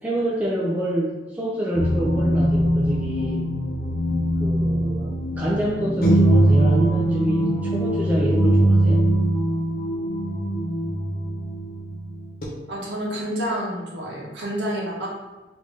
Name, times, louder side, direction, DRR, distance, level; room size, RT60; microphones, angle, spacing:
voice 1, 0.0-3.4 4.4-9.1, right 1 dB, 10° right, -6 dB, 0.4 m, -27 dB
sound 1, 1.7-12.4, right 1 dB, 55° left, 0.7 m, -21 dB
voice 2, 12.7-15.1, equal, 75° right, -3 dB, 0.9 m, -28 dB
3.4 x 2.6 x 3.2 m, 1.2 s
head